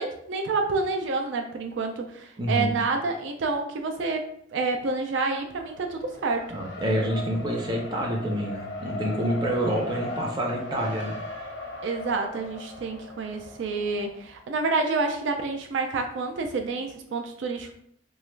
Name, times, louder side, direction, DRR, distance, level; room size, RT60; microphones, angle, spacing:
voice 1, 0.0-4.3 4.5-6.6 11.8-17.7, right 3 dB, 80° right, 5 dB, 0.4 m, -28 dB
voice 2, 2.4-2.7 6.5-11.1, right 1 dB, 25° right, -1 dB, 0.6 m, -27 dB
Race car auto racing, 5.4-14.4, left 2 dB, 75° left, 0.6 m, -38 dB
3.0 x 2.3 x 3.1 m, 0.67 s
head